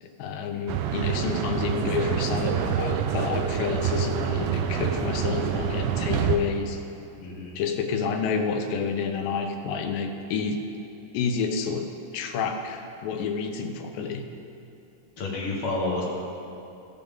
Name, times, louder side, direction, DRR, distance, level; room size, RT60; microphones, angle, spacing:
voice 1, 0.0-6.8 7.6-10.7 11.1-14.2, left 5 dB, 80° left, 5 dB, 2.3 m, -29 dB
sound 1, 0.7-6.4, right 8 dB, 90° right, 2.4 m, -27 dB
voice 2, 7.2-7.6 15.2-16.0, left 2 dB, 55° left, -3 dB, 1.8 m, -29 dB
14.5 x 6.8 x 3.6 m, 2.8 s
omnidirectional pair, 4.2 m